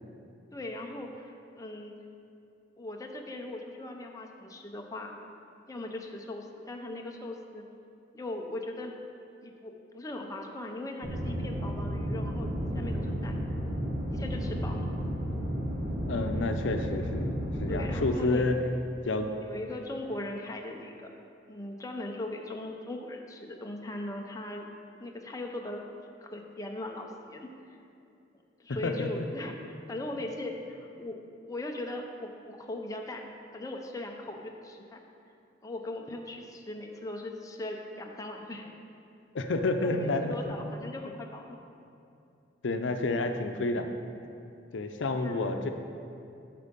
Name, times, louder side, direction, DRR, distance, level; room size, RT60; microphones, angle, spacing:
voice 1, 0.5-1.9 2.8-5.2 5.7-7.6 8.1-8.9 9.4-13.4 14.1-14.9 17.7-18.5 19.4-21.1 21.5-24.7 25.0-25.8 26.2-27.8 28.6-31.2 31.5-33.3 33.5-35.0 35.6-38.7 39.8-41.6 45.1-45.5, left 1 dB, 20° left, 1 dB, 0.6 m, -39 dB
sound 1, 11.0-18.1, equal, 50° right, 1.2 m, -32 dB
voice 2, 16.1-18.6 19.1-19.3 28.8-29.2 39.3-40.3 42.6-43.9 44.7-45.7, left 2 dB, 85° left, 6 dB, 0.6 m, -29 dB
8.3 x 5.9 x 5.2 m, 2.7 s
head